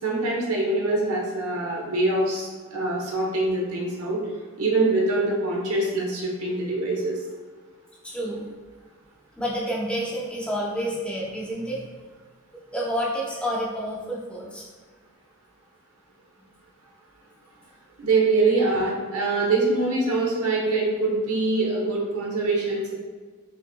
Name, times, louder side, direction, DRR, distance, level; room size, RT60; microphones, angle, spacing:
voice 1, 0.0-4.2 4.6-7.2 18.0-22.9, right 2 dB, 85° right, -2 dB, 1.0 m, -24 dB
voice 2, 8.0-8.5 9.4-11.8 12.7-14.6, equal, 5° left, -5 dB, 0.6 m, -29 dB
5.5 x 3.2 x 2.2 m, 1.5 s
head